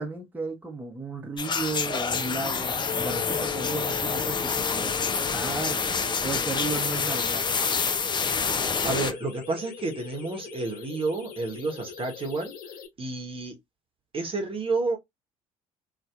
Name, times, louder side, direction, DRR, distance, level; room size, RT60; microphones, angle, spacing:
voice 1, 0.0-7.5, right 3 dB, 10° right, 0.9 m, -34 dB
sound 1, 1.4-9.1, left 5 dB, 25° left, 0.5 m, -27 dB
sound 2, 2.9-12.9, left 7 dB, 60° left, 0.9 m, -39 dB
voice 2, 8.8-12.5 13.0-13.6 14.1-15.0, right 3 dB, 30° right, 1.1 m, -30 dB
2.7 x 2.3 x 2.3 m
hypercardioid pair, 60°, 17 cm